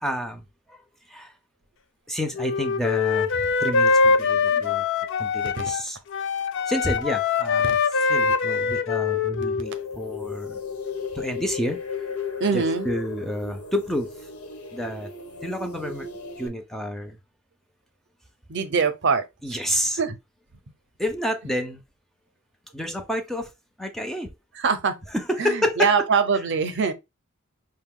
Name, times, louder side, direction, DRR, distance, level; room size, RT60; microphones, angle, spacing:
voice 1, 0.0-0.8 1.1-1.3 2.1-4.9 5.2-6.0 6.5-7.8 8.1-10.6 11.1-11.8 12.5-14.1 14.7-15.1 15.4-16.1 16.4-17.2 19.4-20.0 21.0-21.8 22.7-23.5 23.8-24.3 25.1-25.9, equal, ahead, 0.4 m, -29 dB
Wind instrument woodwind instrument, 2.4-5.8 6.1-9.7, left 5 dB, 55° left, 0.5 m, -23 dB
sound 1, 9.6-16.5, left 5 dB, 75° left, 1.1 m, -35 dB
voice 2, 12.4-12.9 18.5-19.6 20.0-20.2 24.5-25.0 25.4-26.9, right 5 dB, 55° right, 0.6 m, -23 dB
5.0 x 2.2 x 3.6 m
head